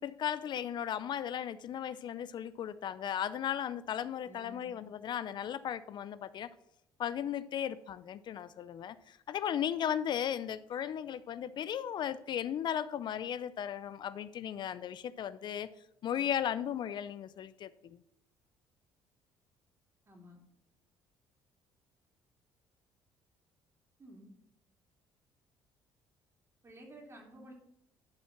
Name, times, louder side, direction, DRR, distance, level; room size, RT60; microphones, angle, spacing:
voice 1, 0.0-6.5 7.0-15.7 16.0-18.0, left 9 dB, 55° left, 15 dB, 0.4 m, -36 dB
voice 2, 4.2-4.7 20.0-20.4 24.0-24.3 26.6-27.5, right 1 dB, 30° right, 1 dB, 3.0 m, -53 dB
11.5 x 4.4 x 5.7 m, 0.82 s
supercardioid pair, 80°, 9 cm